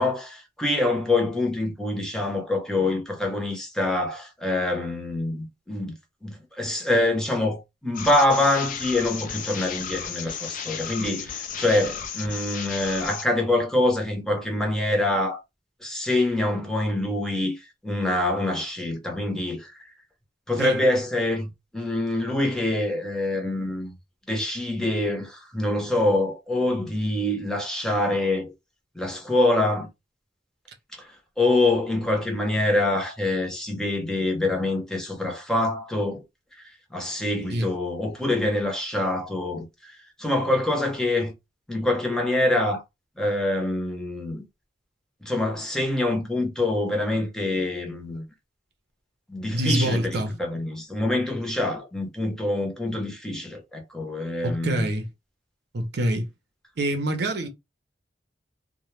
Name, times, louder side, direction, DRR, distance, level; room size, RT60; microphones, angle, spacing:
voice 1, 0.0-5.9 6.2-15.4 15.8-19.9 20.5-23.9 24.3-28.5 28.9-29.9 31.0-36.2 36.5-41.3 41.7-42.8 43.2-44.5 45.2-48.2 49.3-54.9, left 2 dB, 5° left, 0.7 m, -25 dB
sound 1, 7.9-13.2, left 7 dB, 45° left, 0.5 m, -34 dB
voice 2, 49.5-50.3 54.4-55.1 55.7-56.3 56.8-57.5, right 1 dB, 65° right, 0.6 m, -25 dB
2.2 x 2.1 x 3.1 m
head